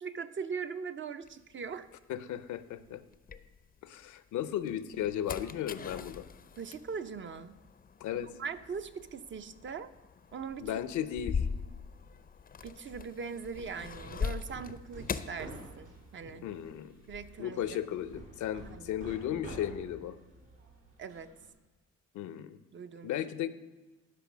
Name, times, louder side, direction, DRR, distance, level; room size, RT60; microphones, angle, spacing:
voice 1, 0.0-1.9 6.6-7.5 8.2-9.9 10.3-10.7 12.6-16.5 17.1-17.8 18.6-19.0 21.0-21.3 22.7-23.1, right 6 dB, 40° right, 10 dB, 0.6 m, -41 dB
sound 1, 1.3-4.0 4.5-16.3 16.5-17.3, left 6 dB, 30° left, 0.5 m, -41 dB
voice 2, 2.1-3.0 3.8-6.3 8.0-8.3 10.6-11.5 16.4-16.9 17.4-20.2 22.1-22.6 23.0-23.5, left 11 dB, 75° left, 14 dB, 0.6 m, -35 dB
Hammer, 13.7-21.5, right 2 dB, 75° right, 3.1 m, -50 dB
12.0 x 5.3 x 6.1 m, 1.1 s
cardioid pair, 90°, 30 cm